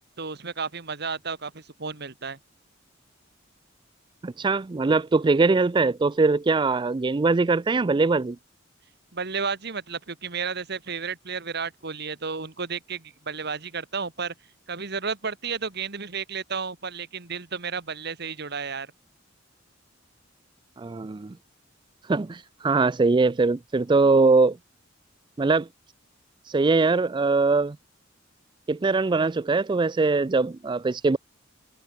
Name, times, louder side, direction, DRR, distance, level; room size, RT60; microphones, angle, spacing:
voice 1, 0.2-2.4 9.1-14.3 14.7-18.9, right 5 dB, 60° right, 1.9 m, -32 dB
voice 2, 4.2-8.4 20.8-21.3 22.1-24.6 25.4-25.7 26.5-27.8 28.7-31.2, right 3 dB, 25° right, 0.4 m, -22 dB
head